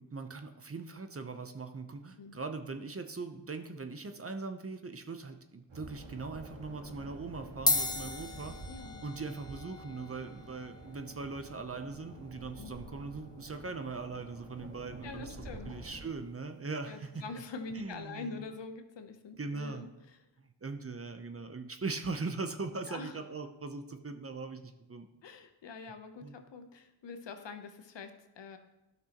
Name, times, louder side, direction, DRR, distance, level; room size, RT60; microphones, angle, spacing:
voice 1, 0.0-8.6 9.0-15.4 15.6-17.2 17.7-18.4 19.4-19.8 20.4-25.1 26.2-26.4, right 3 dB, 30° right, 7 dB, 0.7 m, -40 dB
sound 1, 5.7-16.0, right 2 dB, 75° right, 1.9 m, -49 dB
sound 2, 6.1-6.3 7.1-7.2 7.5-16.2, left 2 dB, 10° left, 0.6 m, -39 dB
voice 2, 8.7-9.0 12.6-12.7 15.0-15.7 16.9-20.2 22.9-23.2 25.2-28.6, left 4 dB, 60° left, 7 dB, 0.9 m, -45 dB
11.5 x 6.1 x 3.0 m, 0.97 s
cardioid pair, 55°, 48 cm